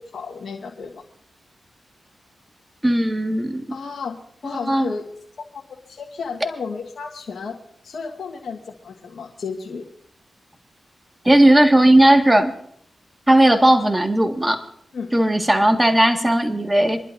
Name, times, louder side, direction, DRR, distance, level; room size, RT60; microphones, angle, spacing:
voice 1, 0.1-1.0 3.7-5.1 5.5-7.6 7.8-9.9 14.9-15.1, left 5 dB, 75° left, -1 dB, 1.5 m, -33 dB
voice 2, 2.8-3.8 4.7-4.9 11.3-12.5 13.3-14.6 15.1-17.0, right 1 dB, 15° right, 5 dB, 1.8 m, -16 dB
27.5 x 11.5 x 2.7 m, 0.65 s
cardioid pair, 45°, 0 cm